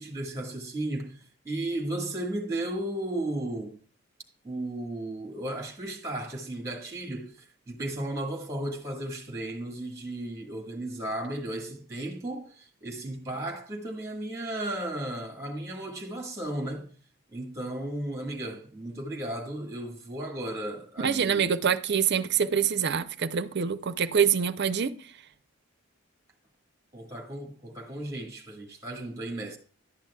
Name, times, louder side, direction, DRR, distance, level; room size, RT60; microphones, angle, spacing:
voice 1, 0.0-3.8 4.4-17.0 17.3-21.5 26.9-29.6, right 1 dB, 15° right, 1.4 m, -35 dB
voice 2, 21.0-24.9, right 7 dB, 50° right, 0.5 m, -25 dB
11.5 x 8.8 x 2.3 m
head